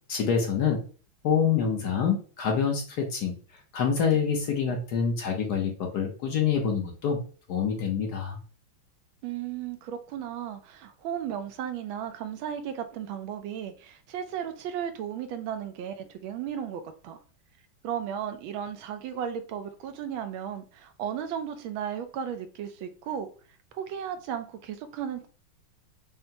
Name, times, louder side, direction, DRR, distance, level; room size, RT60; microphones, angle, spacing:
voice 1, 0.1-0.8 1.2-3.3 3.7-7.2 7.5-8.4, left 6 dB, 60° left, 1.1 m, -26 dB
voice 2, 9.2-17.2 17.8-23.3 23.7-25.3, right 9 dB, 80° right, 1.4 m, -35 dB
5.7 x 2.1 x 2.7 m
omnidirectional pair, 2.2 m